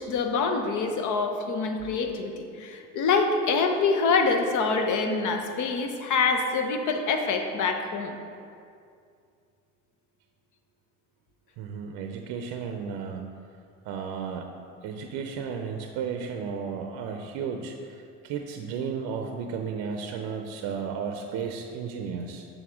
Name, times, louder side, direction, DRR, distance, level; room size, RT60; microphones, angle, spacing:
voice 1, 0.0-8.2, left 4 dB, 50° left, 5 dB, 0.8 m, -25 dB
voice 2, 11.6-13.2 13.8-14.5 14.8-22.5, right 6 dB, 60° right, 4 dB, 0.6 m, -34 dB
6.9 x 5.4 x 3.6 m, 2.3 s
hypercardioid pair, 65°, 39 cm